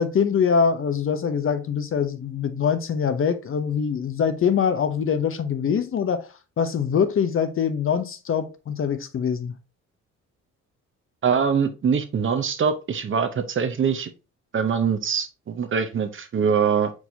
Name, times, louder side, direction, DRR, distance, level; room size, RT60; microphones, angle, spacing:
voice 1, 0.0-6.3 6.6-9.6, left 7 dB, 45° left, 0.7 m, -23 dB
voice 2, 11.2-14.1 14.5-16.9, right 6 dB, 40° right, 0.8 m, -23 dB
4.7 x 4.1 x 2.7 m
cardioid pair, 90°, 30 cm